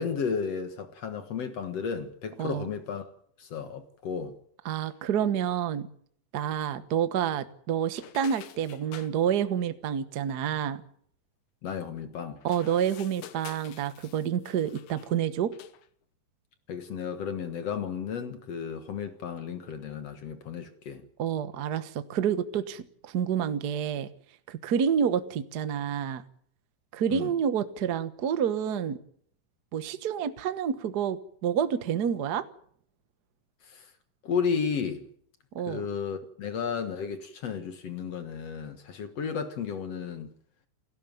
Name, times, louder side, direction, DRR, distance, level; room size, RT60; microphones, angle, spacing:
voice 1, 0.0-3.1 3.4-4.3 11.6-12.4 16.7-21.0 27.1-27.3 33.6-33.9 34.2-35.1 35.7-40.3, left 6 dB, 55° left, 2.4 m, -33 dB
voice 2, 4.6-5.9 6.3-10.8 12.4-15.5 21.2-24.1 24.5-26.2 26.9-29.0 29.7-32.4 35.5-35.8, right 8 dB, 70° right, 0.9 m, -28 dB
sound 1, 7.9-9.1 12.4-15.2 15.5-15.9, left 11 dB, 70° left, 2.5 m, -48 dB
29.0 x 13.0 x 9.3 m
omnidirectional pair, 3.8 m